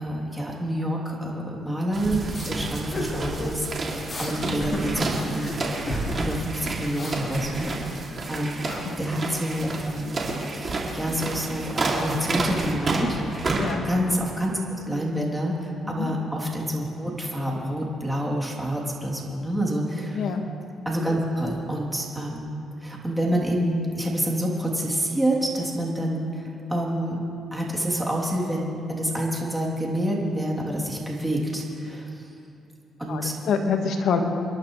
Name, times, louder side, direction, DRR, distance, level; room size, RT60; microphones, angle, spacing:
voice 1, 0.0-2.2 2.4-5.5 5.8-10.2 10.6-13.2 13.8-14.6 14.8-20.2 20.8-22.5 22.8-27.2 27.5-32.2 33.0-33.3, right 1 dB, 10° right, -3 dB, 3.1 m, -28 dB
sound 1, 1.9-13.7, right 3 dB, 40° right, 2.7 m, -31 dB
sound 2, 2.3-2.5 2.9-3.6 4.1-4.3 4.6-5.6 5.9-6.4 6.7-8.0, left 1 dB, 30° left, 3.8 m, -31 dB
voice 2, 8.3-9.0 13.5-13.9 15.8-16.1 20.1-20.4 33.1-33.2 33.5-34.2, left 6 dB, 70° left, 4 dB, 1.5 m, -27 dB
28.5 x 11.5 x 3.3 m, 2.7 s
cardioid pair, 90°, 0 cm